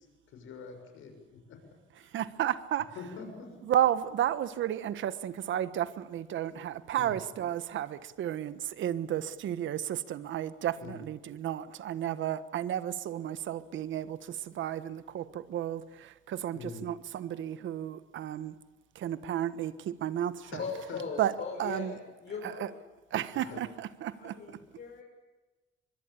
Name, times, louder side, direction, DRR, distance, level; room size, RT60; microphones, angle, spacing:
voice 1, 0.0-1.6 2.0-2.1 2.9-3.6 7.0-7.1 10.8-11.0 16.5-16.8 20.5-20.6 20.9-21.0 23.5-23.6, left 5 dB, 85° left, 5 dB, 6.7 m, -45 dB
voice 2, 2.0-2.9 3.6-18.5 18.9-20.5 21.2-21.3 21.6-22.0 22.4-22.7 23.1-24.6, right 11 dB, 75° right, 14 dB, 1.4 m, -33 dB
voice 3, 20.4-22.8 23.4-23.6 24.1-25.0, left 5 dB, 55° left, -1 dB, 5.9 m, -40 dB
24.0 x 22.0 x 8.6 m, 1.2 s
cardioid pair, 90°, 20 cm